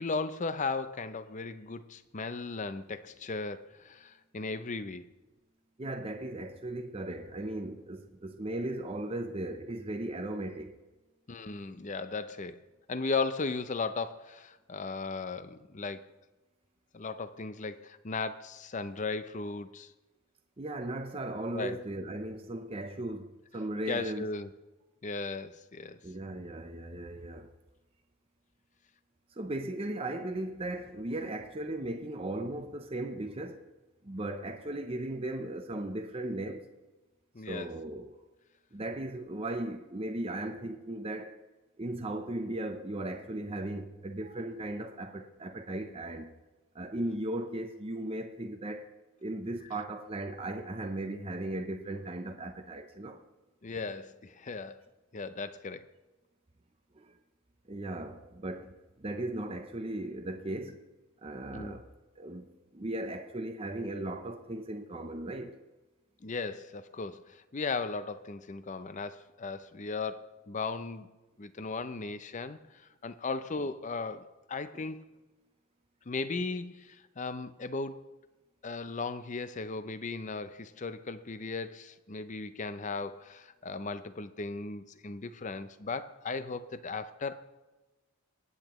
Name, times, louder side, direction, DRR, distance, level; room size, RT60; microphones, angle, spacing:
voice 1, 0.0-5.0 11.3-12.6 12.9-16.1 16.9-19.9 21.5-21.8 23.9-24.5 25.0-26.0 37.3-37.7 53.6-54.8 55.1-55.9 61.5-61.8 66.2-71.1 71.4-72.6 73.0-75.1 76.1-78.1 78.6-87.4, left 4 dB, 35° left, 0.6 m, -36 dB
voice 2, 5.8-10.8 20.6-24.3 26.0-27.5 29.3-33.7 34.0-36.7 37.5-38.2 38.7-41.4 41.8-46.3 46.7-48.9 49.2-53.2 56.9-57.2 57.7-60.8 61.2-65.6 74.7-74.9, right 1 dB, 25° right, 0.6 m, -37 dB
24.5 x 8.9 x 3.1 m
head